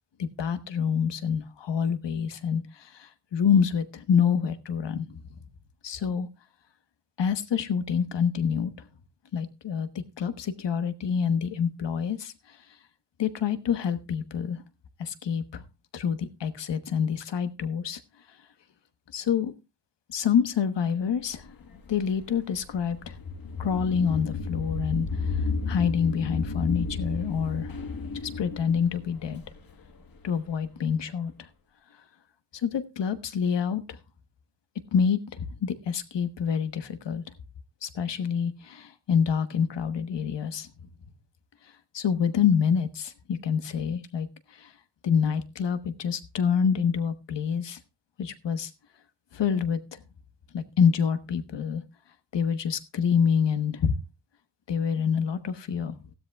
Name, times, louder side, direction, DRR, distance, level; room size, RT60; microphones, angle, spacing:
voice 1, 0.2-5.0 5.8-6.3 7.2-8.7 9.3-9.9 10.2-12.6 13.2-14.6 15.0-15.6 15.9-18.0 19.1-19.5 20.1-21.5 21.9-23.2 23.6-25.4 25.7-27.7 28.2-29.4 30.2-31.5 32.6-34.0 34.9-37.2 37.8-40.7 41.9-44.7 45.0-47.8 48.2-48.7 49.3-50.0 50.5-51.8 52.3-54.0 54.7-56.0, left 7 dB, 80° left, 10 dB, 1.2 m, -27 dB
sound 1, 21.4-30.4, left 4 dB, 55° left, 1.3 m, -33 dB
16.0 x 12.5 x 2.3 m, 0.26 s
wide cardioid pair, 165°, 42 cm